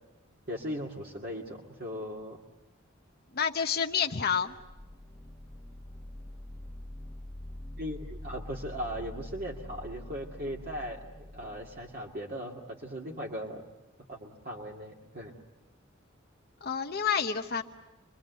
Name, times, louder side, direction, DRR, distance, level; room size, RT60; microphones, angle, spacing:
voice 1, 0.5-2.4 7.8-13.6 14.1-15.3, equal, 50° right, -2 dB, 2.3 m, -38 dB
voice 2, 3.3-4.5 16.6-17.6, left 7 dB, 50° left, 4 dB, 1.0 m, -29 dB
sound 1, 4.6-12.2, left 1 dB, ahead, 1.4 m, -45 dB
27.0 x 22.0 x 8.2 m, 1.0 s
head